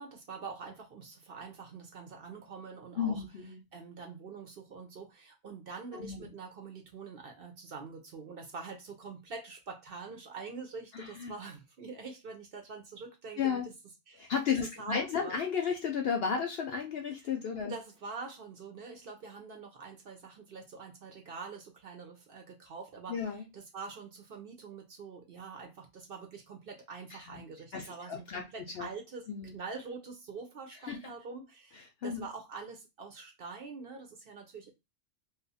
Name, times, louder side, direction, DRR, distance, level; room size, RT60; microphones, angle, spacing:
voice 1, 0.0-3.2 3.7-13.7 14.1-15.4 17.7-29.3 29.5-34.7, right 4 dB, 55° right, 0.8 m, -45 dB
voice 2, 3.0-3.6 5.9-6.2 10.9-11.3 13.4-13.7 14.2-17.7 23.1-23.4 27.1-27.4 27.7-28.4 28.7-28.9 29.3-29.5 30.9-31.1 32.0-32.3, left 7 dB, 65° left, 0.6 m, -33 dB
2.6 x 2.4 x 4.0 m
omnidirectional pair, 1.4 m